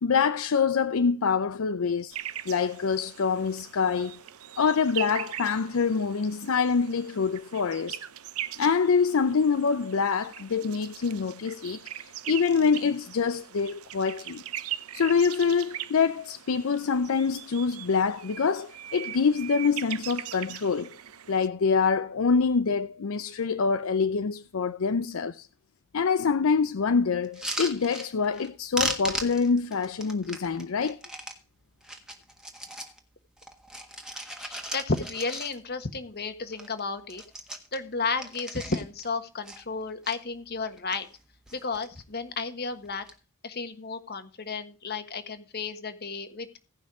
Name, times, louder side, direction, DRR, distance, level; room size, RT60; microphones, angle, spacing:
voice 1, 0.0-2.2 2.5-4.2 4.6-8.0 8.6-14.4 14.9-20.9 21.3-25.5 25.9-31.0, left 5 dB, 65° left, 0.5 m, -25 dB
sound 1, 2.1-21.5, right 12 dB, 75° right, 0.7 m, -41 dB
sound 2, 27.2-28.5 28.7-31.4 31.8-33.0 33.4-35.8 36.2-36.3 36.5-36.8 37.0-39.1 39.4-40.1 40.7-41.2 41.5-42.0 42.8-43.1, right 1 dB, 5° right, 1.4 m, -37 dB
voice 2, 34.4-37.2 37.7-41.1 41.5-43.1 43.4-46.5, left 4 dB, 45° left, 1.4 m, -33 dB
17.0 x 5.7 x 4.8 m
head